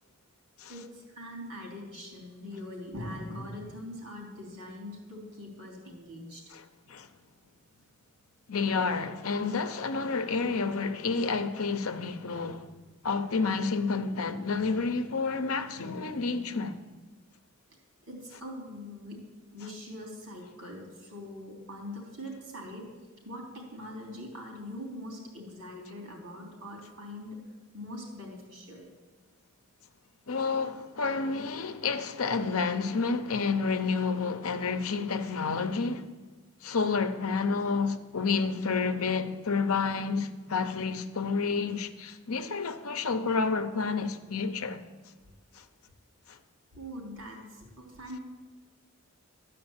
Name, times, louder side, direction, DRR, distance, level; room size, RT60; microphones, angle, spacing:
voice 1, 0.7-6.5 18.1-19.2 19.5-22.9 23.2-27.5 27.7-28.9 46.7-48.2, left 1 dB, 90° right, 3.4 m, -42 dB
voice 2, 6.5-7.1 8.5-12.7 13.0-16.8 30.3-36.0 36.6-44.8 45.5-45.6 46.3-46.4, left 4 dB, 80° left, 0.7 m, -30 dB
12.0 x 5.1 x 8.8 m
head